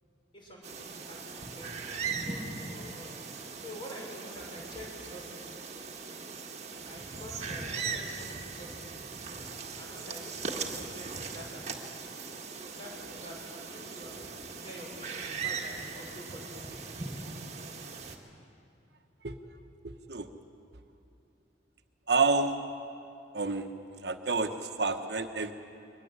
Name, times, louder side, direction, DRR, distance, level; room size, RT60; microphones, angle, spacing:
voice 1, 0.3-3.1 3.6-5.5 6.8-9.0 9.8-11.6 12.6-17.3, equal, 25° left, -2 dB, 5.9 m, -47 dB
sound 1, 0.6-18.2, right 5 dB, 35° right, 1.9 m, -39 dB
voice 2, 22.1-22.6 23.3-23.7 24.0-25.5, right 4 dB, 60° right, 7 dB, 1.2 m, -28 dB
23.0 x 21.0 x 8.1 m, 2.6 s
head